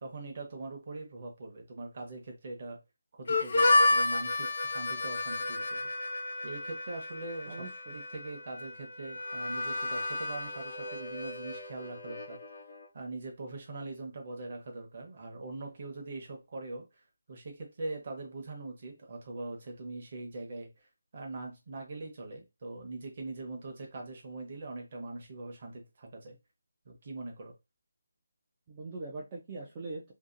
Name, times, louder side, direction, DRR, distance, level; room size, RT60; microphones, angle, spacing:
voice 1, 0.0-2.8 3.1-6.1 6.4-7.7 7.9-12.4 12.9-17.0 17.3-20.9 21.1-26.4 26.8-27.5, right 2 dB, 35° right, 0.8 m, -42 dB
Harmonica, 3.3-12.9, left 2 dB, 40° left, 0.5 m, -31 dB
voice 2, 7.5-7.9 28.7-30.1, right 3 dB, 15° right, 0.3 m, -41 dB
2.7 x 2.4 x 2.5 m
figure-of-eight pair, 175°, 0 cm